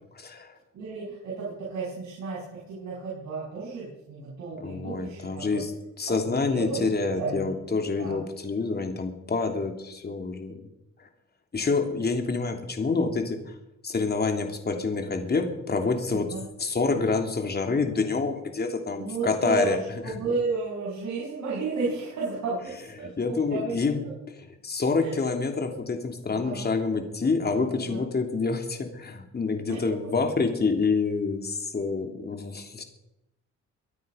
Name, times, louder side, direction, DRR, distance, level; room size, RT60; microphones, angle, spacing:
voice 1, 0.1-0.6 4.6-5.7 6.0-10.6 11.0-11.1 11.5-13.5 13.8-16.3 16.6-20.1 23.2-24.0 24.4-32.8, left 4 dB, 30° left, 5 dB, 3.0 m, -27 dB
voice 2, 0.7-5.6 6.1-6.9 7.2-7.5 8.0-8.2 16.1-16.5 19.0-19.8 20.0-23.8 25.0-25.3 26.3-26.7 27.5-28.1 29.7-30.1, right 4 dB, 65° right, -6 dB, 7.1 m, -33 dB
23.5 x 9.2 x 5.7 m, 0.87 s
cardioid pair, 90°, 30 cm